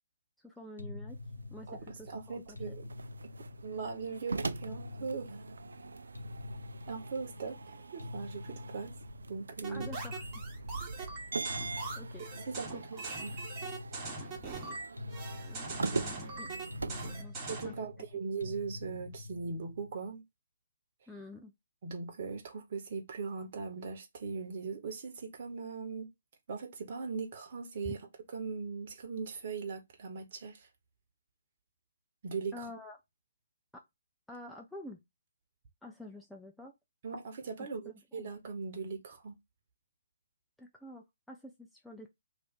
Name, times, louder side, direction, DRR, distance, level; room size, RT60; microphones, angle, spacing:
voice 1, 0.4-1.2 1.5-1.7 2.0-2.8 9.7-10.3 11.1-11.3 12.0-12.3 12.7-13.0 15.4-16.5 16.8-17.7 21.1-21.5 27.8-27.9 32.5-33.0 33.7-33.8 34.3-35.0 35.8-36.7 37.6-38.3 40.6-42.1, left 1 dB, ahead, 0.5 m, -49 dB
sound 1, 0.8-20.1, left 2 dB, 75° left, 0.9 m, -46 dB
sound 2, 1.1-17.2, right 4 dB, 65° right, 0.4 m, -42 dB
voice 2, 1.7-2.9 3.6-5.3 6.9-7.6 7.9-8.9 9.3-9.9 12.2-13.3 17.4-20.2 21.8-26.1 26.5-28.0 28.3-30.7 32.2-32.7 37.0-39.4, right 5 dB, 40° right, 1.2 m, -39 dB
sound 3, 9.6-17.8, right 3 dB, 20° right, 1.2 m, -42 dB
3.3 x 2.7 x 4.5 m
figure-of-eight pair, 130°, 0 cm